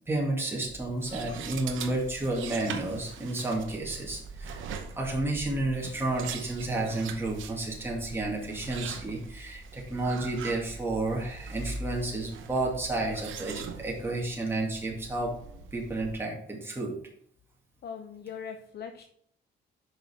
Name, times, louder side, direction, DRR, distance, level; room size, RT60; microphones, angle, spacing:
voice 1, 0.1-4.7 5.0-15.3 15.7-17.0, right 2 dB, 10° right, -3 dB, 2.2 m, -31 dB
sound 1, 0.7-16.2, right 4 dB, 80° right, 0.9 m, -41 dB
voice 2, 17.8-19.0, left 7 dB, 55° left, 6 dB, 0.7 m, -40 dB
5.8 x 5.6 x 4.8 m, 0.66 s
cardioid pair, 90°, 20 cm